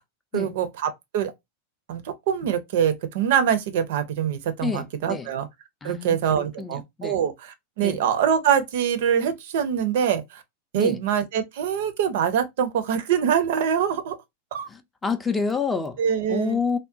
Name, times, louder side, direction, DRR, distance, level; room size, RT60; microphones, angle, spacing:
voice 1, 0.3-1.3 1.9-5.5 5.8-10.4 10.7-14.2 14.5-14.7 16.0-16.6, right 8 dB, 55° right, 0.5 m, -24 dB
voice 2, 4.6-5.3 5.8-7.2 7.8-8.0 10.7-11.0 14.7-16.0 16.3-16.8, left 5 dB, 15° left, 0.4 m, -28 dB
3.5 x 2.1 x 2.4 m
figure-of-eight pair, 90°, 0 cm